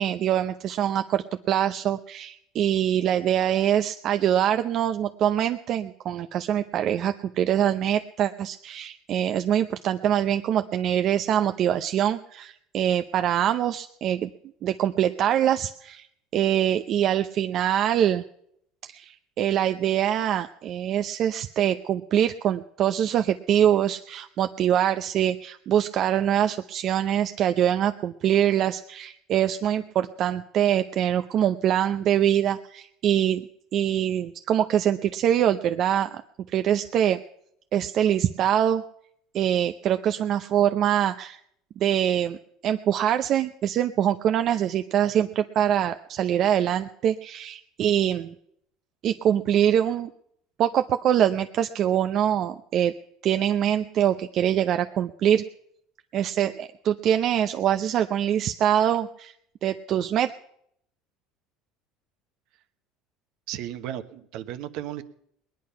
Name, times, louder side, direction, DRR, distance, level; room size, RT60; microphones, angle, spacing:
voice 1, 0.0-14.3 14.6-16.1 16.3-18.2 18.8-33.5 33.7-36.2 36.5-37.2 37.7-38.8 39.3-41.4 41.8-42.4 42.6-48.3 49.0-50.1 50.6-52.9 53.2-55.4 56.1-59.3 59.6-60.3, right 10 dB, 50° right, 8 dB, 0.6 m, -24 dB
voice 2, 63.5-65.0, right 12 dB, 65° right, 10 dB, 1.1 m, -34 dB
19.5 x 10.5 x 5.7 m, 0.72 s
supercardioid pair, 110°, 0 cm